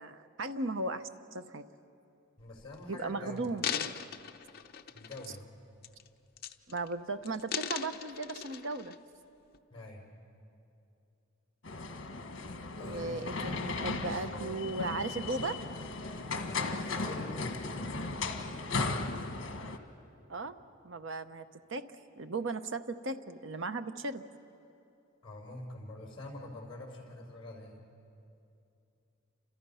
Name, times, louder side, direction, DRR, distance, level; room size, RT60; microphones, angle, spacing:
voice 1, 0.0-1.6 2.9-3.9 6.7-8.9 12.8-15.6 20.3-20.6 20.8-21.9 22.2-24.2, right 2 dB, 70° right, 10 dB, 0.9 m, -36 dB
sound 1, 2.4-2.7 3.4-5.5 5.8-6.1 6.4-6.9 7.2-9.0 9.5-9.6, left 8 dB, 50° left, 0.8 m, -39 dB
voice 2, 2.4-3.7 4.9-5.6 9.7-10.2 12.8-13.3 16.7-17.9 25.2-27.8, left 1 dB, 25° left, 0 dB, 5.1 m, -46 dB
sound 2, 11.6-19.8, left 3 dB, 65° left, 1.5 m, -36 dB
30.0 x 27.0 x 5.7 m, 2.7 s
head